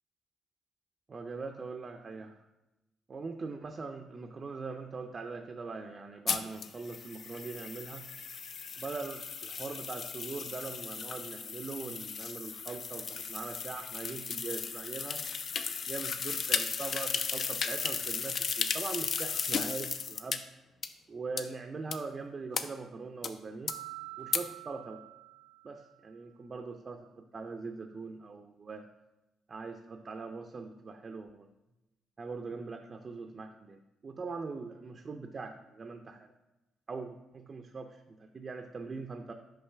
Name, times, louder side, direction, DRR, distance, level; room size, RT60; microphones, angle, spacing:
voice 1, 1.1-2.4 3.1-8.1 8.8-15.2 15.9-20.4 21.1-23.7 24.2-25.0 25.6-27.1 27.3-28.9 29.5-31.5 32.2-36.3 36.9-39.3, right 4 dB, 40° right, 5 dB, 0.4 m, -41 dB
sound 1, 6.3-20.4 20.8-20.9 21.4-21.5 21.9-22.0 22.5-22.6 23.2-23.3 23.7-23.8 24.3-24.4, left 6 dB, 55° left, 0.4 m, -35 dB
Mallet percussion, 23.7-26.1, right 18 dB, 85° right, 0.5 m, -47 dB
5.5 x 5.0 x 3.4 m, 0.96 s
cardioid pair, 90°, 0 cm